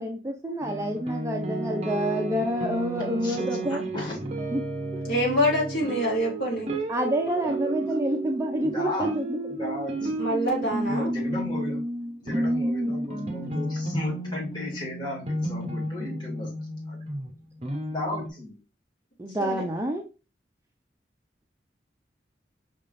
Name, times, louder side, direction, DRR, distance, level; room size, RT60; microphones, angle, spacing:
voice 1, 0.0-3.8 4.5-4.6 6.9-9.3 12.9-13.0 19.2-20.0, equal, 15° right, 3 dB, 0.5 m, -28 dB
sound 1, 0.6-18.3, right 1 dB, 35° right, 0.9 m, -32 dB
voice 2, 3.2-4.4 7.4-8.0 8.6-9.1 9.6-10.3 10.8-11.8 12.2-16.5 16.9-17.0 17.9-18.6, left 1 dB, 25° left, -4 dB, 2.1 m, -35 dB
voice 3, 5.0-6.7 10.0-11.1 19.4-19.6, equal, 55° left, -4 dB, 2.6 m, -26 dB
5.6 x 3.5 x 2.5 m, 0.31 s
head